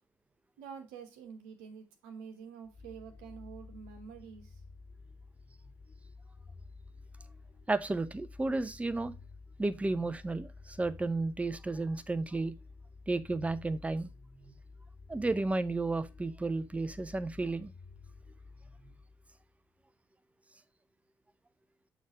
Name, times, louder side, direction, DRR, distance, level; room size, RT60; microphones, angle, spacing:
voice 1, 0.6-4.6, right 6 dB, 70° right, 1.1 m, -48 dB
sound 1, 2.7-19.6, left 3 dB, 40° left, 1.9 m, -52 dB
voice 2, 7.7-9.1 9.6-12.5 13.1-14.1 15.1-17.7, right 2 dB, 15° right, 0.6 m, -32 dB
6.4 x 3.5 x 5.0 m
figure-of-eight pair, 45°, 10 cm